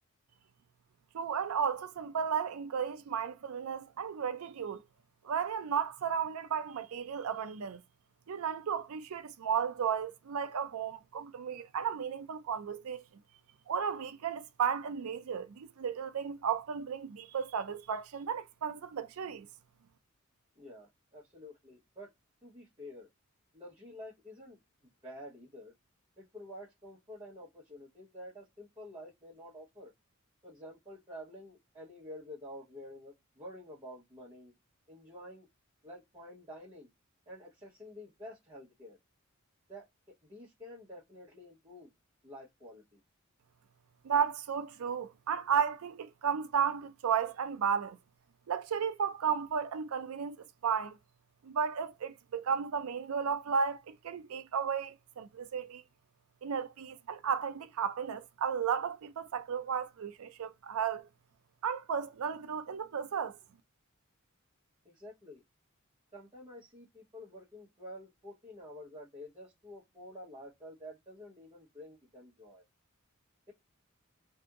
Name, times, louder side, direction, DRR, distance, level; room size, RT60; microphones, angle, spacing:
voice 1, 1.1-4.8 5.2-7.8 8.3-13.0 13.7-19.5 44.0-48.0 48.5-51.0 51.4-55.8 56.4-61.1 61.6-63.4, right 7 dB, 85° right, 0.4 m, -34 dB
voice 2, 20.6-22.1 22.4-23.1 23.5-24.6 25.0-25.7 26.2-29.9 30.4-34.5 34.9-35.5 35.8-36.9 37.3-39.0 39.7-39.9 40.3-41.9 42.2-43.0 64.8-65.4 66.1-72.6, left 1 dB, 20° right, 1.0 m, -49 dB
2.8 x 2.5 x 3.4 m
head